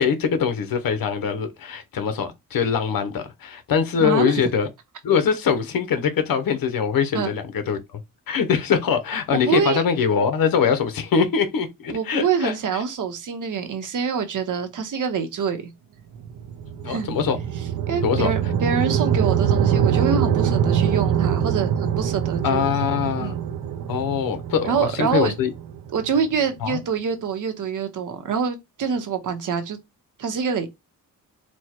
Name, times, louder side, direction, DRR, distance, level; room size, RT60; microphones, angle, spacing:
voice 1, 0.0-4.7 5.0-8.0 8.3-12.5 16.8-17.4 18.0-18.3 22.4-23.3 23.9-25.5 26.6-26.8, left 6 dB, 80° left, 1.0 m, -23 dB
voice 2, 4.0-4.4 7.1-7.3 9.3-9.8 11.9-15.6 16.8-17.1 17.9-22.7 23.2-23.4 24.6-25.3 25.9-29.8 30.2-30.7, right 6 dB, 65° right, 1.0 m, -25 dB
sound 1, 16.2-26.4, right 8 dB, 85° right, 0.8 m, -24 dB
4.4 x 2.3 x 4.4 m
wide cardioid pair, 165°, 34 cm